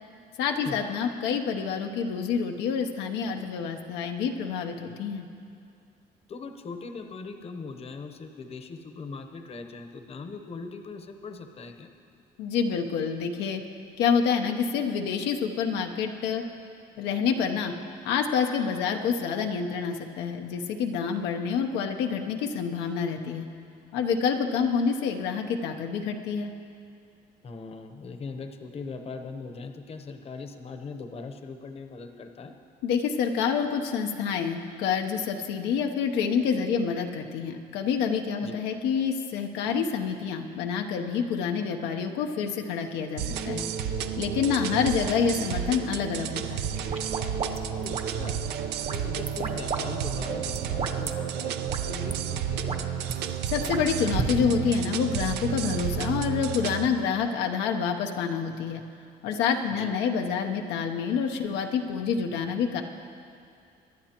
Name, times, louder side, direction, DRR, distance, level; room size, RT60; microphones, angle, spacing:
voice 1, 0.4-5.3 12.4-13.6 14.0-16.4 17.0-17.7 18.0-23.5 23.9-26.5 32.8-43.7 44.2-46.7 53.4-58.8 59.2-62.8, left 6 dB, 90° left, 3 dB, 0.8 m, -27 dB
voice 2, 6.3-11.9 27.4-32.5 38.4-38.6 47.7-48.4 48.9-53.1 59.7-59.9, left 4 dB, 35° left, 6 dB, 0.9 m, -40 dB
sound 1, 43.2-56.9, right 9 dB, 80° right, 0.6 m, -31 dB
sound 2, 46.7-48.4 48.8-49.8 50.1-51.1 51.7-51.8 52.1-52.2 52.5-53.1 53.7-54.3, right 5 dB, 40° right, 1.0 m, -33 dB
24.5 x 11.0 x 3.0 m, 2.4 s
cardioid pair, 110°, 17 cm